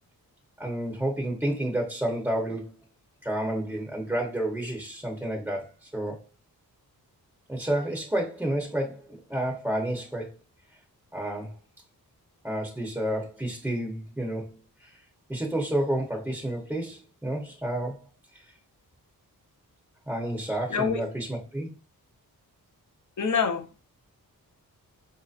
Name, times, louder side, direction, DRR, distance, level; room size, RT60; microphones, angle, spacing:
voice 1, 0.6-2.7 3.2-6.2 7.5-10.3 11.1-11.5 12.4-14.5 14.8-15.0 15.3-18.1 18.3-18.4 20.1-21.7, right 1 dB, 5° right, 0.8 m, -30 dB
voice 2, 20.7-21.1 23.2-23.8, left 6 dB, 55° left, 0.7 m, -26 dB
4.8 x 2.7 x 2.4 m
wide cardioid pair, 85°, 37 cm